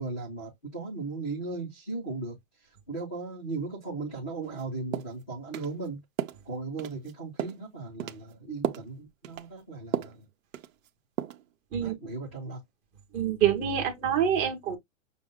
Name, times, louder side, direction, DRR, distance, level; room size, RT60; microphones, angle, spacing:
voice 1, 0.0-2.4 2.9-6.0 6.4-10.3 11.8-12.6, right 3 dB, 10° left, 0.4 m, -37 dB
sound 1, 4.5-4.6 4.9-5.2 5.5-5.7 6.2-6.4 6.8-7.1 7.4-7.6 8.0-8.2 8.6-8.9 9.2-9.5 9.9-10.2 10.5-10.9 11.2-11.4, right 10 dB, 80° right, 0.9 m, -33 dB
voice 2, 13.1-14.8, right 9 dB, 20° right, 1.0 m, -26 dB
6.2 x 2.1 x 3.5 m
supercardioid pair, 175°, 40 cm